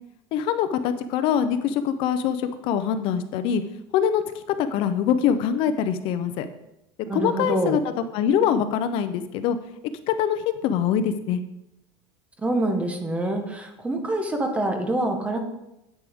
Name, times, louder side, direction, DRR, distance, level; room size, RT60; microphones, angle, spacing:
voice 1, 0.3-3.6 3.9-4.2 4.7-6.5 7.1-7.8 8.1-9.6 10.1-11.4, left 8 dB, 50° left, 10 dB, 0.6 m, -23 dB
voice 2, 7.1-7.8 12.4-15.4, right 1 dB, 10° right, 5 dB, 1.1 m, -26 dB
9.6 x 8.4 x 3.6 m, 0.88 s
cardioid pair, 160°, 11 cm